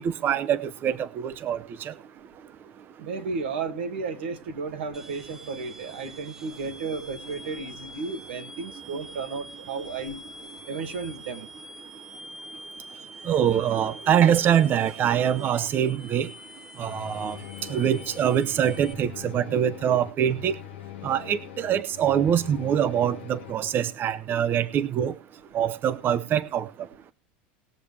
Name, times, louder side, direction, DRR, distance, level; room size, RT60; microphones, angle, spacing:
voice 1, 0.0-1.9 13.3-16.3 16.8-17.4 17.7-20.6 21.0-25.1 25.5-26.7, right 9 dB, 35° right, 16 dB, 0.7 m, -24 dB
voice 2, 3.0-10.2 10.7-11.5, right 4 dB, 90° right, 7 dB, 2.1 m, -33 dB
sound 1, 4.9-18.9, equal, 10° right, 1.1 m, -45 dB
sound 2, 16.8-23.5, left 16 dB, 90° left, 0.8 m, -42 dB
20.0 x 7.1 x 3.3 m, 0.34 s
supercardioid pair, 120°, 6 cm